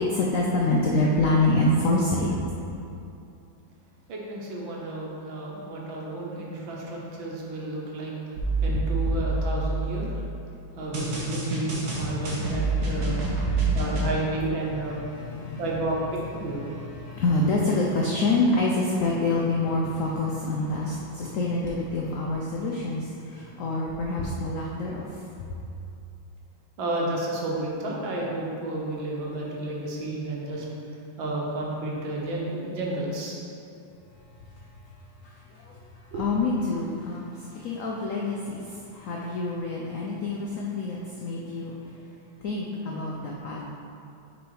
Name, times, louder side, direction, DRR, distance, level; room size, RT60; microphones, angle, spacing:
voice 1, 0.0-2.3 11.9-13.9 14.8-15.8 16.3-25.2 35.2-35.8 36.1-41.7 42.4-43.6, left 2 dB, 90° left, -3 dB, 0.7 m, -27 dB
voice 2, 4.1-8.1 8.6-10.1 10.8-13.2 13.8-15.0 15.6-16.6 26.8-30.6 31.2-33.4 36.1-36.2, right 2 dB, 75° right, -3 dB, 1.8 m, -31 dB
sound 1, 8.4-10.2 10.9-14.1, right 2 dB, 50° right, 1.4 m, -27 dB
6.3 x 4.0 x 4.7 m, 2.7 s
omnidirectional pair, 2.2 m